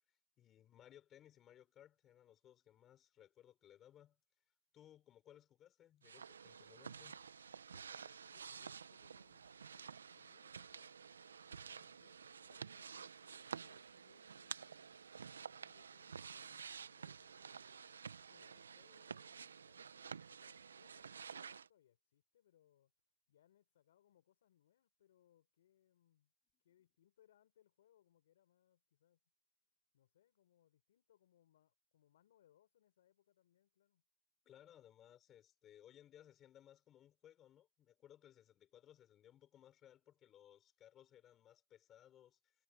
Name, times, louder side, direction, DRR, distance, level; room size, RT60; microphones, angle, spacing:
voice 1, 0.4-4.2 4.7-7.2 34.4-42.5, left 11 dB, 15° left, 4.7 m, -63 dB
sound 1, 6.0-21.7, right 6 dB, 80° right, 1.0 m, -51 dB
voice 2, 7.6-11.0 11.6-17.8 18.3-22.9 23.3-26.3 26.6-29.2 29.9-34.0, left 11 dB, 50° left, 4.8 m, -74 dB
hypercardioid pair, 160°, 0 cm